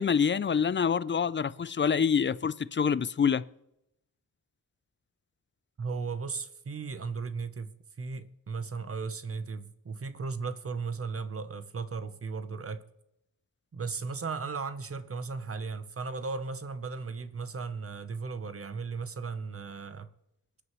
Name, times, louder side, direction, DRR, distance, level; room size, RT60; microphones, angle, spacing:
voice 1, 0.0-3.4, left 6 dB, 35° left, 0.4 m, -26 dB
voice 2, 5.8-12.8 13.7-20.1, right 4 dB, 40° right, 0.8 m, -36 dB
23.0 x 9.7 x 3.1 m
wide cardioid pair, 110°, 37 cm